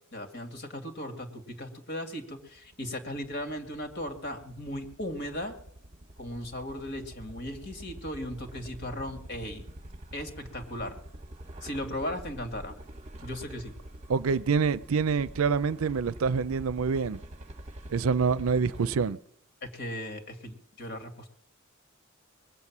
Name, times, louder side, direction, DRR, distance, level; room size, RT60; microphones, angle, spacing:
voice 1, 0.1-5.6 6.2-9.6 10.1-11.0 11.6-12.7 13.2-13.7 19.6-21.3, left 1 dB, 55° left, 2.2 m, -37 dB
sound 1, 2.4-19.1, right 1 dB, 35° right, 0.9 m, -46 dB
voice 2, 14.1-17.2 17.9-19.2, right 5 dB, 90° right, 0.5 m, -26 dB
21.0 x 8.3 x 7.3 m
head